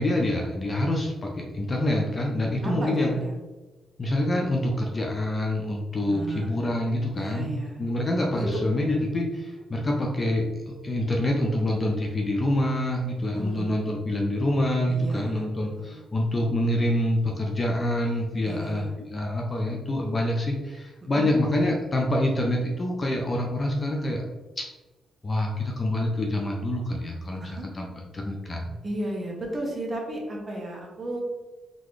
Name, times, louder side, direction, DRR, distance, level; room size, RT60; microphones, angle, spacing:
voice 1, 0.0-3.2 4.0-7.5 7.8-24.2 24.6-24.7 25.2-27.9 28.1-28.7, left 1 dB, 25° left, 0 dB, 0.5 m, -26 dB
voice 2, 2.6-3.3 6.1-6.6 7.2-7.9 8.3-8.6 13.3-13.9 14.9-16.0 18.4-18.9 21.1-21.3 27.4-27.7 28.8-31.2, right 1 dB, 25° right, -2 dB, 1.0 m, -34 dB
3.9 x 3.6 x 3.2 m, 1.2 s
cardioid pair, 150°, 0 cm